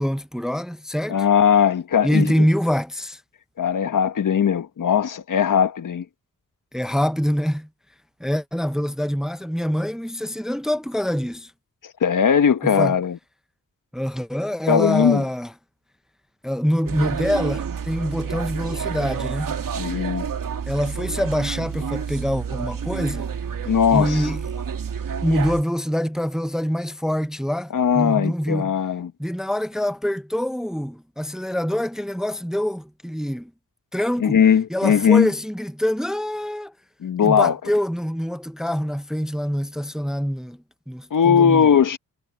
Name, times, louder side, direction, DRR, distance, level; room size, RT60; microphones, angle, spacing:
voice 1, 0.0-1.2 2.0-3.2 6.7-7.7 8.2-11.5 12.6-12.9 13.9-15.5 16.4-19.6 20.7-23.3 23.9-24.4 25.2-28.8 29.2-33.5 33.9-34.4 34.7-36.7 37.2-40.6 40.9-41.7, equal, ahead, 0.7 m, -25 dB
voice 2, 1.1-2.4 3.6-6.0 12.0-13.2 14.7-15.2 19.8-20.3 23.7-24.2 27.7-29.1 34.2-35.3 37.0-37.6 41.1-42.0, left 7 dB, 65° left, 1.6 m, -19 dB
sound 1, 16.9-25.6, right 7 dB, 70° right, 2.7 m, -29 dB
cardioid pair, 80°, 35 cm